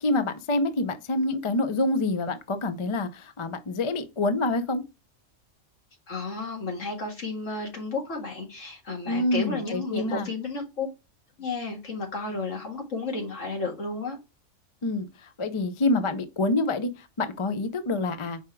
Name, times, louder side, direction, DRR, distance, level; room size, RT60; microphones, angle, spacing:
voice 1, 0.0-4.8 9.1-10.3 14.8-15.1 15.4-18.4, left 2 dB, 40° left, 0.4 m, -27 dB
voice 2, 6.1-10.9 11.4-14.2, left 3 dB, 65° left, 2.3 m, -32 dB
5.1 x 4.8 x 4.5 m
omnidirectional pair, 1.4 m